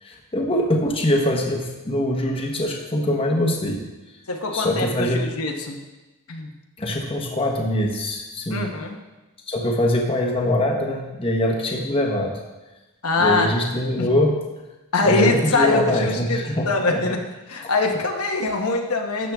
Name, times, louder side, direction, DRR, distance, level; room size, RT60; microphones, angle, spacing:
voice 1, 0.0-3.9 4.5-5.3 6.8-8.7 9.5-12.4 13.2-14.3 15.0-17.0, left 1 dB, 25° left, 0 dB, 1.1 m, -23 dB
voice 2, 4.3-5.8 6.3-6.5 8.5-9.0 13.0-13.5 14.0-14.1 14.9-17.2 17.5-19.3, left 3 dB, 80° left, 2 dB, 1.1 m, -23 dB
12.5 x 7.6 x 3.5 m, 1.1 s
head